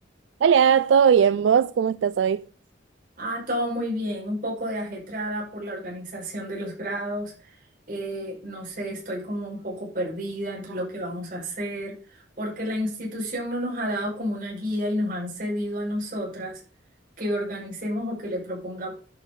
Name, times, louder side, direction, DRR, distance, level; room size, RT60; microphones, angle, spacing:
voice 1, 0.4-2.4, right 7 dB, 75° right, 0.3 m, -19 dB
voice 2, 3.2-7.6 7.9-16.6 17.2-18.9, equal, 45° right, 5.6 m, -31 dB
11.0 x 5.5 x 5.1 m
head